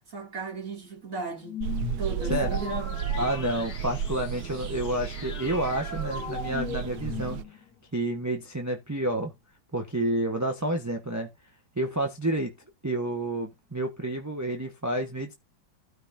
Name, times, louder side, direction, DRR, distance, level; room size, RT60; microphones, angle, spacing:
voice 1, 0.1-1.6 2.0-3.3, right 3 dB, 40° right, 3.2 m, -36 dB
sound 1, 1.4-7.7, left 7 dB, 65° left, 2.3 m, -38 dB
sound 2, 1.6-7.4, right 10 dB, 70° right, 1.1 m, -33 dB
voice 2, 2.3-2.6 3.2-7.4 7.9-9.3 9.7-11.3 11.8-12.5 12.8-15.3, right 1 dB, 10° right, 1.0 m, -29 dB
15.5 x 5.4 x 2.7 m
omnidirectional pair, 2.1 m